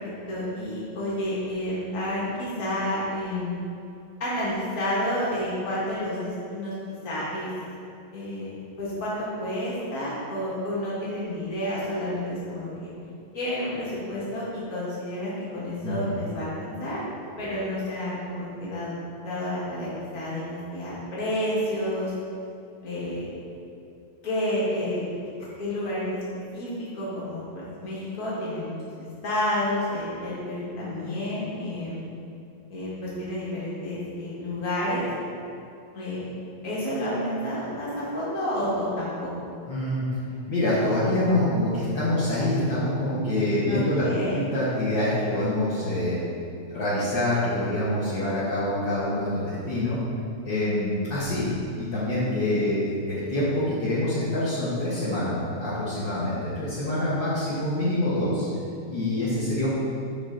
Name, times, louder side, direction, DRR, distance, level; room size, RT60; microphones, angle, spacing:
voice 1, 0.0-3.6 4.2-6.7 7.0-7.5 8.1-8.5 8.8-12.9 13.3-17.0 17.4-18.9 19.2-22.1 22.8-23.2 24.2-25.1 25.4-26.2 26.5-32.0 32.7-35.1 35.9-36.2 36.6-39.3 43.7-44.4, left 1 dB, 40° left, -8 dB, 2.2 m, -30 dB
voice 2, 39.7-40.0 40.5-46.2 46.7-50.0 50.4-51.5 51.8-58.5 58.9-59.7, left 1 dB, 60° left, -11 dB, 2.1 m, -26 dB
8.1 x 5.1 x 3.9 m, 2.6 s
omnidirectional pair, 2.3 m